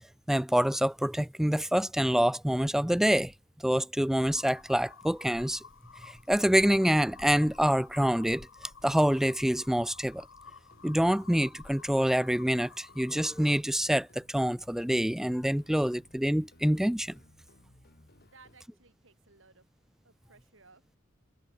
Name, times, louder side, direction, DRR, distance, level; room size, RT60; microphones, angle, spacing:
voice 1, 0.3-3.3 3.6-5.6 6.0-8.5 8.8-10.2 10.8-17.1, equal, ahead, 0.4 m, -26 dB
sound 1, 4.2-13.6, left 5 dB, 80° left, 1.2 m, -52 dB
sound 2, 10.4-18.6, left 1 dB, 55° left, 3.4 m, -60 dB
voice 2, 18.2-19.7 20.0-21.0, right 4 dB, 90° right, 5.6 m, -59 dB
head